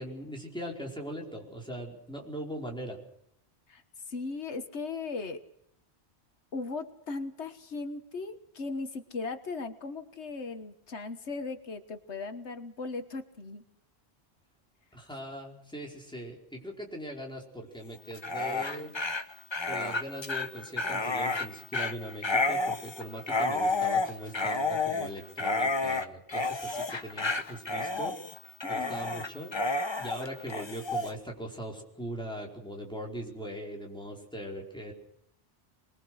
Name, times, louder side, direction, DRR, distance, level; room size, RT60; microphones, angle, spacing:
voice 1, 0.0-3.0 14.9-18.9 19.6-28.2 28.7-34.9, equal, 5° left, -1 dB, 4.9 m, -40 dB
voice 2, 3.7-5.4 6.5-13.6 28.6-29.0, left 3 dB, 85° left, 8 dB, 1.7 m, -38 dB
Dog, 18.1-31.1, left 2 dB, 25° left, 1.1 m, -31 dB
25.0 x 21.5 x 6.4 m, 0.76 s
omnidirectional pair, 1.1 m